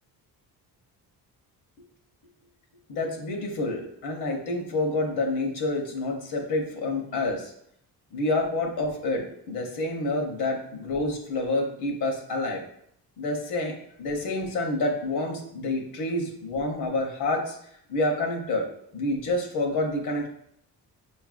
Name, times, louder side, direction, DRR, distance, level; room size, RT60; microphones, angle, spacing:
voice 1, 2.9-7.5 8.1-12.6 13.2-17.6 17.9-18.7 18.9-20.3, left 2 dB, 70° left, 2 dB, 0.9 m, -28 dB
5.3 x 2.5 x 2.4 m, 0.71 s
cardioid pair, 80°, 40 cm